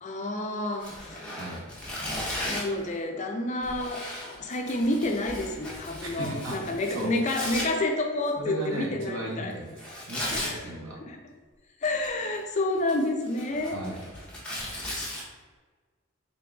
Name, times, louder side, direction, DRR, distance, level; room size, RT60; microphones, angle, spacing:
voice 1, 0.0-1.3 2.5-4.0 4.4-9.5 10.3-10.6 11.1-11.2 11.8-13.8, left 2 dB, 35° left, 3 dB, 0.4 m, -29 dB
Tearing, 0.8-2.8 3.6-7.7 9.8-10.5 11.8-12.4 12.7-15.2, left 1 dB, 5° left, 0.8 m, -36 dB
voice 2, 1.3-1.7 6.0-7.1 8.4-11.0 13.6-14.1, right 1 dB, 75° right, -1 dB, 0.9 m, -36 dB
3.8 x 3.6 x 2.3 m, 1.4 s
head